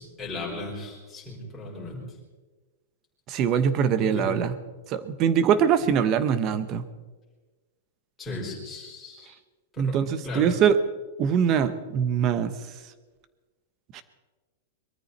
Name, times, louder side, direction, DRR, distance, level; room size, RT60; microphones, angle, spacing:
voice 1, 0.0-2.0 4.0-4.4 5.8-6.0 8.2-9.3 9.7-10.5, left 2 dB, 5° left, -5 dB, 4.6 m, -36 dB
voice 2, 3.3-4.5 4.9-6.8 9.8-10.8 11.2-12.5 13.9-14.0, right 8 dB, 25° right, 13 dB, 0.9 m, -23 dB
22.5 x 13.5 x 4.2 m, 1.3 s
supercardioid pair, 175°, 0 cm